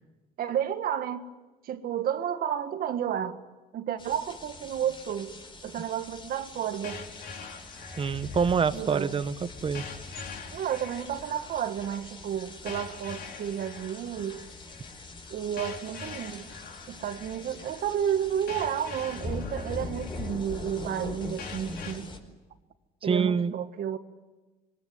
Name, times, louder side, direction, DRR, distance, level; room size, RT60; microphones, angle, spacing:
voice 1, 0.4-1.3 1.6-3.4 3.7-5.3 5.6-7.0 8.7-9.1 10.5-14.4 15.3-16.5 16.9-22.1 23.0-24.0, right 9 dB, 60° right, 1.8 m, -31 dB
sound 1, 4.0-22.2, left 3 dB, 30° left, 4.9 m, -42 dB
sound 2, 6.8-21.9, left 6 dB, 70° left, 4.8 m, -45 dB
voice 2, 8.0-9.8 23.0-23.5, right 6 dB, 30° right, 1.2 m, -26 dB
27.0 x 23.0 x 9.4 m
cardioid pair, 110°, 17 cm